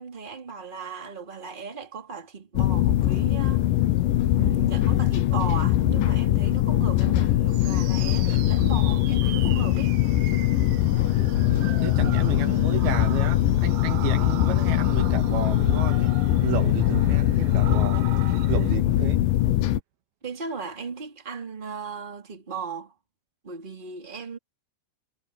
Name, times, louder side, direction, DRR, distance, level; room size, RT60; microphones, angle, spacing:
voice 1, 0.0-3.6 4.3-9.9 20.2-22.9 23.4-24.4, right 5 dB, 15° right, 2.8 m, -36 dB
sound 1, 2.6-19.8, left 14 dB, 70° left, 2.3 m, -22 dB
sound 2, 7.5-18.8, right 15 dB, 90° right, 3.1 m, -41 dB
voice 2, 11.4-16.1 16.4-18.1 18.5-19.3, right 9 dB, 75° right, 3.2 m, -32 dB
omnidirectional pair, 4.8 m